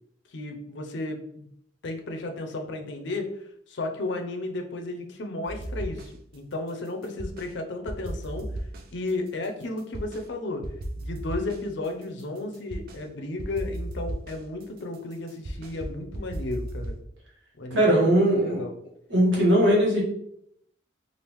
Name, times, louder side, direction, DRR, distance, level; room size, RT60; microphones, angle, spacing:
voice 1, 0.3-1.5 1.8-8.5 8.9-10.7 11.0-17.0 17.6-18.7, left 2 dB, 65° left, 4 dB, 0.5 m, -34 dB
sound 1, 5.5-6.4 6.7-7.6 7.9-10.3 10.6-13.0 13.4-17.0, right 1 dB, 50° right, 0.4 m, -36 dB
voice 2, 17.7-18.6 19.1-20.0, right 1 dB, 70° right, -3 dB, 1.2 m, -20 dB
3.5 x 2.4 x 3.0 m, 0.71 s
head